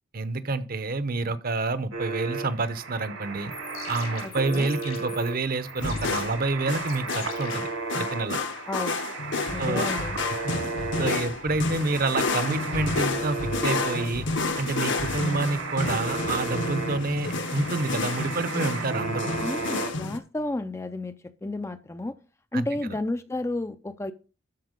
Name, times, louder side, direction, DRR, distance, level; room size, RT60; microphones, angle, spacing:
voice 1, 0.1-3.5 3.9-7.7 7.9-8.4 9.6-9.9 10.4-10.5 11.0-14.3 14.6-19.3 22.5-22.9, right 3 dB, 45° right, 0.7 m, -28 dB
sound 1, 1.9-19.9, right 4 dB, 70° right, 1.8 m, -35 dB
sound 2, 3.4-8.4, left 7 dB, 80° left, 3.7 m, -44 dB
voice 2, 4.2-4.7 8.7-9.0 9.5-10.2 19.4-21.2 21.4-22.2 22.5-24.1, left 2 dB, 15° left, 0.4 m, -31 dB
sound 3, 5.8-20.2, left 3 dB, 60° left, 1.0 m, -30 dB
12.5 x 4.5 x 5.1 m
head